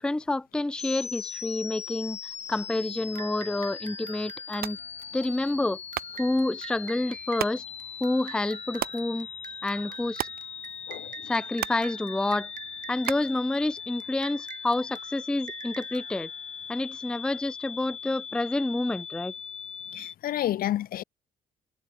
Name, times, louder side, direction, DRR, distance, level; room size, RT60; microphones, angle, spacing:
voice 1, 0.0-2.2 2.5-4.8 5.1-5.8 6.2-7.6 8.0-9.3 9.6-10.3 11.3-12.5 12.9-16.3 16.7-19.3, left 2 dB, 5° left, 0.4 m, -28 dB
sound 1, 0.8-20.1, left 7 dB, 45° left, 0.9 m, -40 dB
sound 2, 3.2-17.3, right 9 dB, 60° right, 2.8 m, -47 dB
sound 3, 4.5-14.2, right 12 dB, 75° right, 4.9 m, -40 dB
voice 2, 10.9-11.3 19.9-21.0, left 13 dB, 70° left, 0.8 m, -30 dB
cardioid pair, 80°, 16 cm